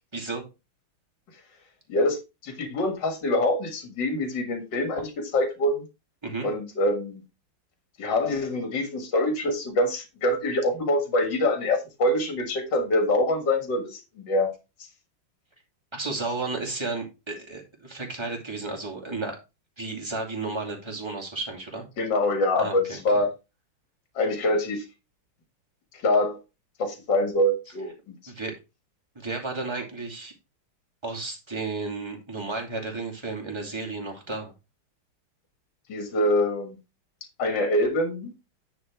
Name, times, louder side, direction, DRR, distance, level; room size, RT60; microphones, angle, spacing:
voice 1, 0.1-0.4 6.2-6.5 15.9-19.4 19.8-21.8 22.6-23.2 28.3-28.6 29.2-30.3 31.0-34.5, right 3 dB, 15° right, 2.3 m, -33 dB
voice 2, 2.4-5.8 6.4-7.2 8.0-14.5 22.0-23.3 24.2-24.8 25.9-26.4 26.8-27.9 35.9-36.8 37.4-38.3, left 1 dB, 60° left, 2.3 m, -25 dB
9.8 x 4.5 x 4.5 m
omnidirectional pair, 2.3 m